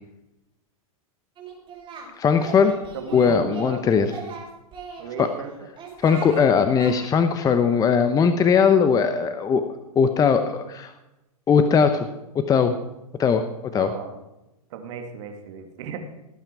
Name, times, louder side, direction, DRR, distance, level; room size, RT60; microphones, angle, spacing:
Singing, 1.4-2.1 2.4-3.7 4.0-5.3 5.8-6.4 6.8-6.9, right 5 dB, 25° right, 5.9 m, -38 dB
voice 1, 2.2-2.7 3.1-4.1 5.2-5.3 6.0-9.7 10.0-10.9 11.5-12.1 12.3-12.7 13.2-13.4 13.7-13.9, left 6 dB, 20° left, 9 dB, 0.9 m, -19 dB
voice 2, 2.9-4.2 5.0-5.5 13.7-14.2 14.7-16.0, right 6 dB, 55° right, 5 dB, 2.5 m, -35 dB
17.5 x 9.0 x 4.8 m, 0.93 s
hypercardioid pair, 115°, 19 cm